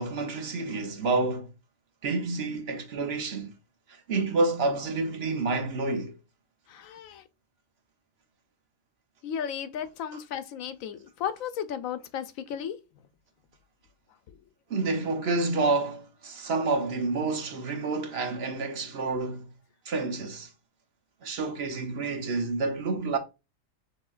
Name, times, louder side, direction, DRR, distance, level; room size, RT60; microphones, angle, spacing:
voice 1, 0.0-1.5 2.0-3.5 3.9-6.2 14.7-19.5 19.9-20.5 21.2-23.2, right 3 dB, 55° right, 0.9 m, -29 dB
voice 2, 6.7-7.2 9.2-12.8, left 8 dB, 90° left, 1.0 m, -34 dB
6.6 x 2.7 x 2.4 m
omnidirectional pair, 1.4 m